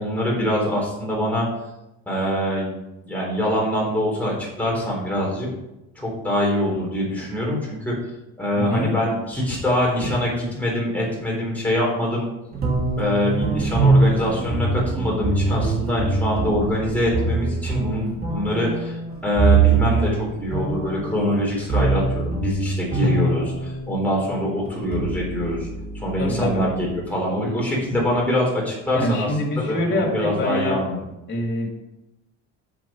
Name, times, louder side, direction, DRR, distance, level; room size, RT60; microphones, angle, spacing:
voice 1, 0.0-1.5 2.1-2.7 3.0-5.5 6.0-7.9 8.4-12.3 13.0-25.7 25.9-29.3 29.6-31.0, left 1 dB, 5° left, -4 dB, 3.7 m, -24 dB
voice 2, 8.5-8.9 26.2-26.6 28.9-30.8 31.3-31.7, left 1 dB, 35° left, -2 dB, 3.1 m, -24 dB
sound 1, 12.5-24.0 24.7-27.1, right 3 dB, 30° right, 2.6 m, -23 dB
7.4 x 7.0 x 5.1 m, 0.92 s
cardioid pair, 145°, 31 cm